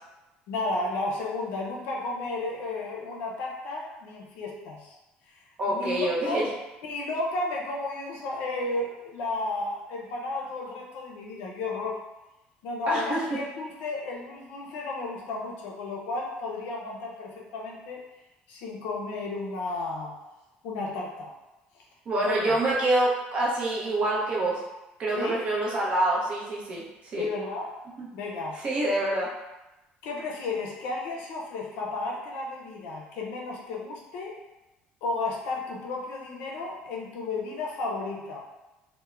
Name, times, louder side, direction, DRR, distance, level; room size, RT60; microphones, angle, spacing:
voice 1, 0.5-5.0 5.7-6.5 6.8-12.0 12.6-18.0 18.5-20.1 20.6-21.3 22.2-22.6 25.2-25.3 27.2-27.8 28.1-28.6 30.0-34.4 35.0-38.4, left 2 dB, 85° left, -2 dB, 0.5 m, -33 dB
voice 2, 5.6-6.5 12.9-13.2 22.1-24.6 25.0-26.8 27.1-27.3 28.0-28.1 28.6-29.3, right 1 dB, 35° right, -4 dB, 0.6 m, -26 dB
2.4 x 2.0 x 3.1 m, 1.0 s
cardioid pair, 165°, 3 cm